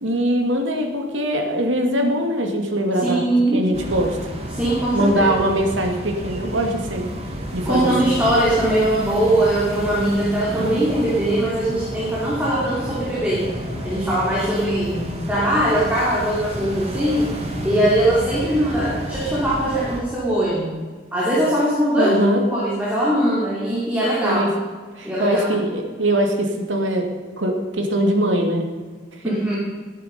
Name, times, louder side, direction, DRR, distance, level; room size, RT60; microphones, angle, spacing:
voice 1, 0.0-3.2 3.5-4.3 4.9-7.1 7.5-8.1 22.0-22.4 24.2-24.5 25.0-27.1 27.4-28.6 29.3-29.6, right 1 dB, 85° right, 3 dB, 2.4 m, -22 dB
voice 2, 3.0-3.6 4.5-5.3 7.6-13.4 13.8-17.3 17.6-20.7 21.1-22.1 22.5-24.4 25.0-25.5 29.2-29.6, right 1 dB, 10° right, -7 dB, 3.1 m, -21 dB
sound 1, 3.7-20.0, equal, 35° right, 2.3 m, -31 dB
18.5 x 10.0 x 5.3 m, 1.5 s
head